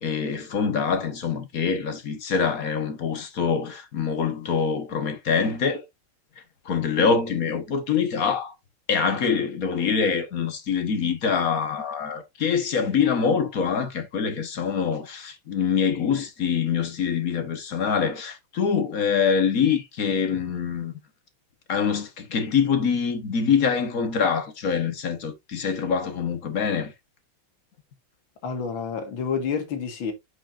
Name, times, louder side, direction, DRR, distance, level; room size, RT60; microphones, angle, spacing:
voice 1, 0.0-5.8 6.6-8.5 8.9-20.9 21.7-26.9, left 6 dB, 50° left, 1.4 m, -25 dB
voice 2, 28.4-30.1, left 6 dB, 70° left, 2.3 m, -29 dB
7.7 x 5.9 x 2.5 m
omnidirectional pair, 2.3 m